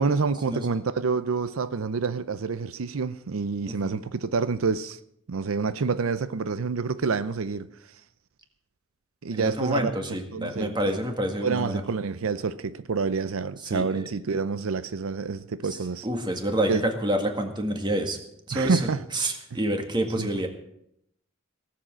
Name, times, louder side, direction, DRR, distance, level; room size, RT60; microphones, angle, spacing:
voice 1, 0.0-5.0 5.3-7.7 9.2-11.0 11.4-16.1 16.7-16.8 18.5-19.0 20.2-20.3, right 4 dB, 90° right, 0.6 m, -28 dB
voice 2, 9.3-11.8 13.6-14.1 15.7-15.8 16.0-18.2 18.5-18.8 19.1-20.5, right 1 dB, 20° right, 1.9 m, -28 dB
18.0 x 7.6 x 7.5 m
head